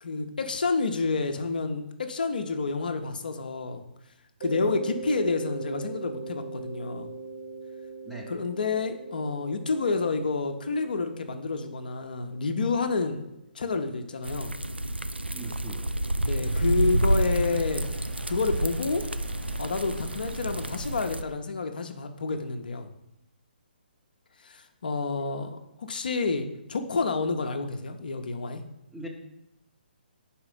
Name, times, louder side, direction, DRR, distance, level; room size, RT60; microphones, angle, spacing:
voice 1, 0.0-3.8 4.4-7.1 8.3-13.2 13.5-14.5 16.2-17.8 18.3-19.0 19.6-22.9 24.4-28.6, left 4 dB, 55° left, 6 dB, 0.6 m, -29 dB
Mallet percussion, 4.4-13.0, right 3 dB, 40° right, 1.1 m, -40 dB
sound 1, 14.2-21.2, right 1 dB, 90° right, 0.4 m, -29 dB
voice 2, 15.3-15.9 28.9-29.1, right 1 dB, ahead, -2 dB, 0.7 m, -40 dB
sound 2, 16.4-21.4, right 2 dB, 65° right, 1.1 m, -39 dB
4.8 x 4.2 x 5.3 m, 0.86 s
figure-of-eight pair, 135°, 6 cm